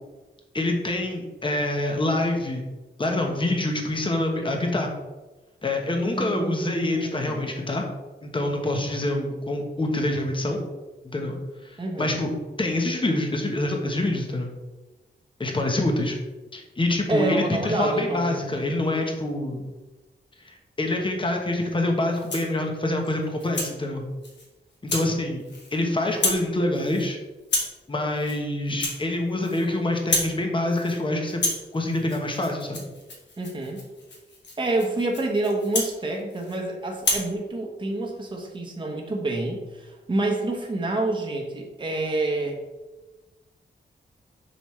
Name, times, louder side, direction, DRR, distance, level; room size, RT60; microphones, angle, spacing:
voice 1, 0.5-2.6 3.0-4.9 5.6-7.8 8.2-10.6 11.0-11.4 11.6-12.3 12.6-14.5 15.4-16.2 16.5-19.7 20.4-24.1 24.8-25.4 25.7-27.2 27.9-31.4 31.7-32.9, left 1 dB, 25° left, 2 dB, 1.0 m, -26 dB
voice 2, 6.0-7.5 11.8-12.2 17.1-18.4 33.4-33.8 34.6-42.6, right 2 dB, 25° right, 0 dB, 1.0 m, -28 dB
Rattle (instrument), 22.1-22.6 23.0-23.7 24.2-24.5 24.9-25.1 25.4-25.8 26.1-26.5 26.7-27.1 27.4-27.8 28.2-28.4 28.7-29.7 29.9-30.4 30.7-31.0 31.3-36.6 37.0-37.3, left 2 dB, 70° left, 1.6 m, -30 dB
7.0 x 6.0 x 3.2 m, 1.1 s
wide cardioid pair, 160°, 19 cm